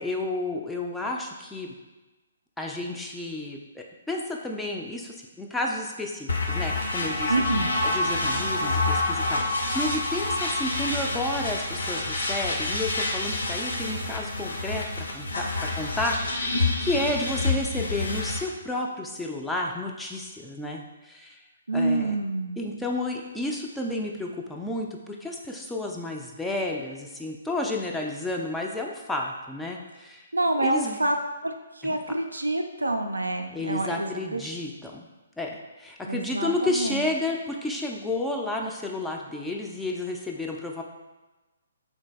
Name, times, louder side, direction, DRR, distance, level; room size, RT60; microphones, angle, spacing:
voice 1, 0.0-1.7 2.6-7.3 7.8-21.4 21.7-22.1 22.6-30.2 30.6-31.0 31.8-32.0 33.5-35.1 35.4-40.8, left 2 dB, 5° left, 0 dB, 0.3 m, -31 dB
sound 1, 6.3-18.4, left 2 dB, 65° left, 0.5 m, -27 dB
voice 2, 7.3-7.7 21.7-22.6 30.3-31.2 31.4-34.5 36.1-37.1, right 2 dB, 80° right, 5 dB, 0.3 m, -27 dB
3.7 x 2.6 x 2.2 m, 1.1 s
figure-of-eight pair, 130°, 0 cm